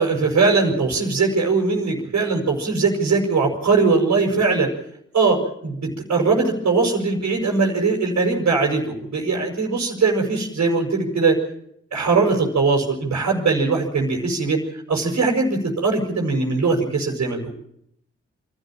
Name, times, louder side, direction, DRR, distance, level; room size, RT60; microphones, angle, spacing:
voice 1, 0.0-4.7 5.1-11.4 11.9-14.6 14.9-17.5, right 4 dB, 70° right, -1 dB, 6.1 m, -20 dB
25.5 x 13.0 x 9.1 m, 0.72 s
supercardioid pair, 45°, 29 cm